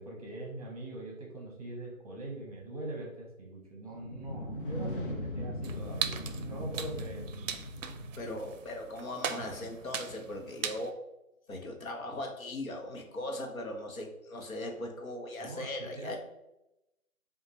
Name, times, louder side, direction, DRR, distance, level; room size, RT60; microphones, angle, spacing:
voice 1, 0.0-6.2 6.5-7.6 15.4-16.2, right 1 dB, 25° right, -2 dB, 0.8 m, -42 dB
sound 1, 3.9-8.8, left 1 dB, 40° left, 0.5 m, -39 dB
sound 2, 5.6-10.9, right 7 dB, 65° right, 0.5 m, -39 dB
voice 2, 8.2-11.0 11.5-16.2, left 1 dB, 75° left, 2 dB, 1.1 m, -39 dB
5.1 x 2.5 x 3.1 m, 0.89 s
figure-of-eight pair, 150°, 42 cm